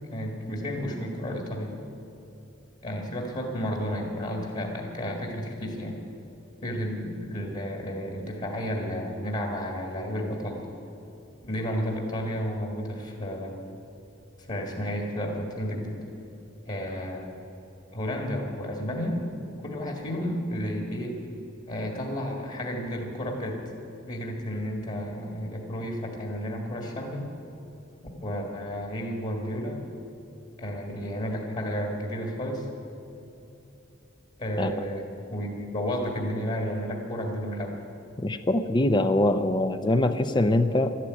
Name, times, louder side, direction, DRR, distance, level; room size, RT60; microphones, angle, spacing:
voice 1, 0.1-1.7 2.8-6.0 6.6-10.6 11.4-13.5 14.4-16.0 16.7-17.3 17.9-19.2 19.6-21.2 21.7-23.6 24.0-27.3 28.2-29.8 30.6-32.7 34.4-37.7, equal, 40° left, 2 dB, 1.9 m, -32 dB
voice 2, 38.2-41.0, left 1 dB, 25° left, 9 dB, 0.5 m, -23 dB
12.5 x 12.0 x 9.5 m, 2.9 s
head